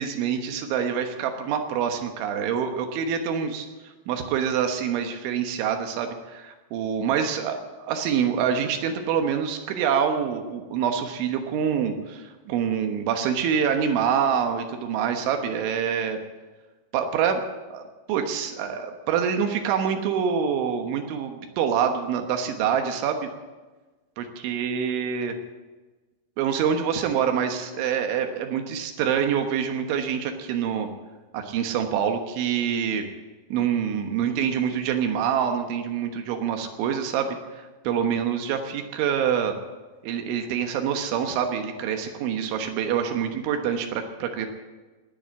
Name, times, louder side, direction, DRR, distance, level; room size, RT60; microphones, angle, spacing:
voice 1, 0.0-16.2 16.9-17.4 17.7-17.8 18.1-23.3 24.2-25.3 26.4-30.9 31.3-33.1 33.5-39.5 40.0-44.5, right 7 dB, 90° right, 5 dB, 3.7 m, -26 dB
19.0 x 7.9 x 8.3 m, 1.2 s
omnidirectional pair, 5.3 m